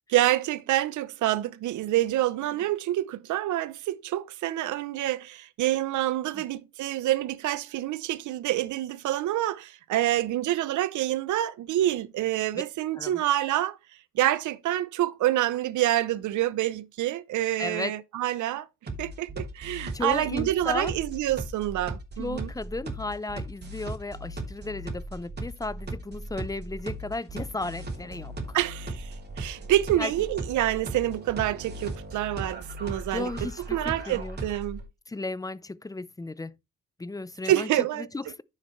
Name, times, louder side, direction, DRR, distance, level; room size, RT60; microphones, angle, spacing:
voice 1, 0.1-13.8 14.1-18.7 19.0-22.5 28.5-33.3 33.7-34.8 37.5-38.1, right 14 dB, 75° right, 0.7 m, -27 dB
voice 2, 17.6-18.0 19.9-21.0 22.2-28.6 30.0-30.1 33.1-34.4 35.1-36.5 37.0-37.7 38.0-38.4, left 2 dB, 10° left, 0.6 m, -34 dB
sound 1, 18.9-34.8, right 2 dB, 35° right, 3.1 m, -37 dB
9.8 x 7.4 x 3.2 m
cardioid pair, 90°, 30 cm